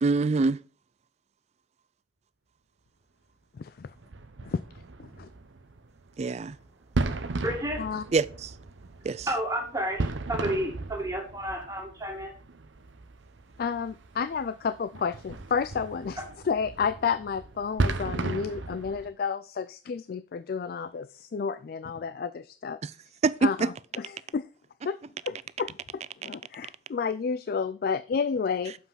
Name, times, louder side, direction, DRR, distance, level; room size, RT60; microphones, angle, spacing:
voice 1, 0.0-0.6 6.2-6.6 8.1-8.5 9.0-9.3 22.8-22.9 23.2-23.7, right 3 dB, 35° right, 0.3 m, -25 dB
voice 2, 3.5-3.9 4.4-4.6 5.0-5.3 7.8-8.0 13.6-22.8 23.4-24.5 24.8-25.0 25.2-28.7, left 6 dB, 50° left, 0.3 m, -31 dB
sound 1, 4.0-19.1, right 3 dB, 80° right, 0.8 m, -35 dB
voice 3, 7.4-7.8 9.3-12.3, right 1 dB, 20° right, 2.1 m, -31 dB
7.1 x 5.6 x 5.7 m
head